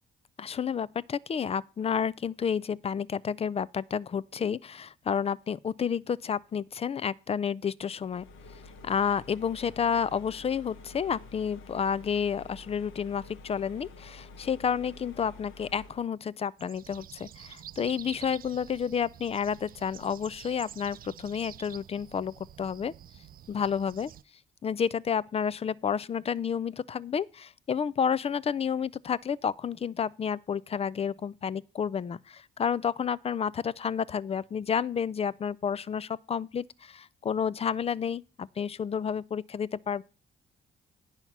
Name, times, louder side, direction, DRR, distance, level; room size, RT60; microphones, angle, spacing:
voice 1, 0.4-8.2 8.8-22.9 23.5-24.1 24.6-40.0, left 7 dB, 30° left, 0.4 m, -30 dB
sound 1, 8.0-16.1, left 2 dB, 85° left, 1.0 m, -49 dB
sound 2, 16.6-24.2, right 10 dB, 45° right, 0.4 m, -49 dB
9.3 x 5.6 x 5.9 m
cardioid pair, 90°, 20 cm